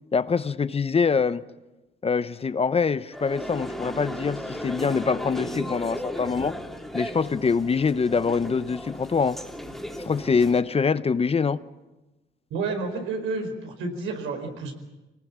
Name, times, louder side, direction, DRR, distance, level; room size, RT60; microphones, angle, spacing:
voice 1, 0.1-1.4 2.0-6.5 6.9-9.4 10.0-11.6, left 5 dB, 30° left, 0.8 m, -24 dB
sound 1, 3.1-10.6, equal, ahead, 3.0 m, -36 dB
voice 2, 12.5-14.7, right 3 dB, 90° right, 4.8 m, -30 dB
26.0 x 19.0 x 7.4 m
cardioid pair, 90°, 20 cm